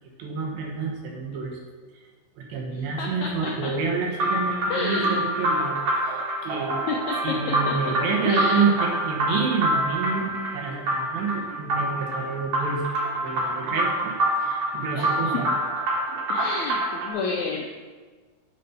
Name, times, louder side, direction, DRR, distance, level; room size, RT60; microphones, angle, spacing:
voice 1, 0.2-1.6 2.4-5.8 6.0-6.9 7.2-14.1 14.4-15.5, right 4 dB, 85° right, -1 dB, 3.1 m, -28 dB
voice 2, 2.7-3.7 4.7-5.2 6.9-8.0 8.3-8.7 14.9-15.4 16.3-17.6, left 4 dB, 80° left, -1 dB, 1.6 m, -30 dB
sound 1, 4.2-17.1, right 1 dB, 65° right, 2.9 m, -26 dB
9.1 x 4.1 x 5.9 m, 1.4 s
omnidirectional pair, 4.1 m